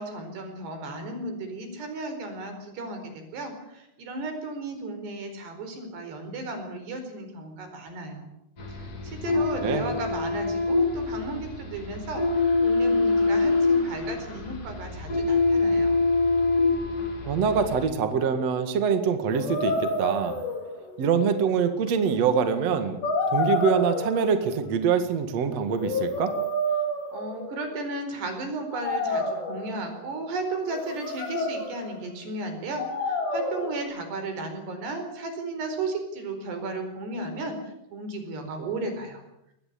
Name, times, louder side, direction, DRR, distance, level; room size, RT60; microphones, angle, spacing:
voice 1, 0.0-8.2 8.7-16.1 27.1-39.2, right 2 dB, 75° right, 6 dB, 6.6 m, -34 dB
sound 1, 8.6-17.9, left 3 dB, 35° left, 3.6 m, -25 dB
voice 2, 9.3-9.8 17.3-20.4 21.0-23.0 23.3-26.3, right 6 dB, 50° right, 8 dB, 2.5 m, -24 dB
sound 2, 19.3-21.1 21.9-22.0 23.0-24.6 25.6-27.8 28.7-29.9 30.7-32.0 32.8-33.8, left 1 dB, 85° left, 5.5 m, -29 dB
22.5 x 19.5 x 8.5 m, 0.82 s
omnidirectional pair, 4.8 m